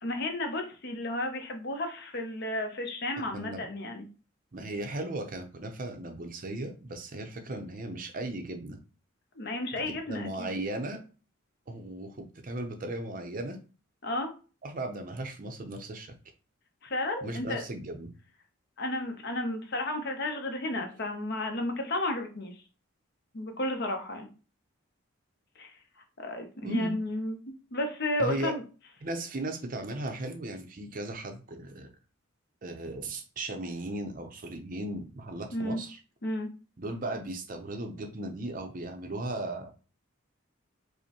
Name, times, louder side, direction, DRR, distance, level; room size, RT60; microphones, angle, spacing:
voice 1, 0.0-4.1 9.4-10.6 14.0-14.3 16.8-17.6 18.8-22.5 23.3-24.3 25.6-25.8 26.2-27.4 27.7-28.6 35.5-35.8 36.2-36.5, left 1 dB, 50° left, 4 dB, 0.7 m, -32 dB
voice 2, 3.3-3.6 4.5-8.8 9.8-11.0 11.7-13.6 14.6-16.2 17.2-18.1 26.6-27.0 28.2-28.5 29.0-31.9 32.6-36.0 36.8-39.7, right 1 dB, 40° right, 5 dB, 0.6 m, -36 dB
5.1 x 2.1 x 2.9 m, 0.35 s
head